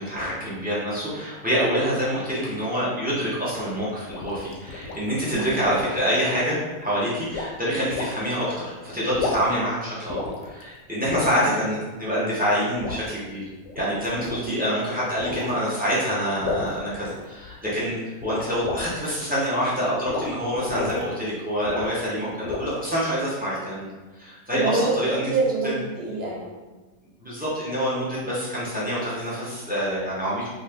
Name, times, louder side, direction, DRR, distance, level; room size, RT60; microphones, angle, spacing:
voice 1, 0.0-13.4 13.7-23.9 24.2-25.3 25.6-25.7 27.2-30.5, equal, 15° right, -8 dB, 0.3 m, -26 dB
sound 1, 3.8-6.1 7.3-7.5 7.9-8.1 9.0-9.7 10.1-10.6 11.1-11.4 12.8-13.0 13.6-14.5 15.2-15.6 16.4-17.5 18.2-19.1 20.1-20.3 20.5-21.0 21.7-22.1 22.4-22.9, left 3 dB, 70° left, 0.8 m, -31 dB
voice 2, 14.3-14.6 24.5-26.7, right 3 dB, 60° right, -3 dB, 0.7 m, -27 dB
2.6 x 2.5 x 3.4 m, 1.2 s
omnidirectional pair, 1.6 m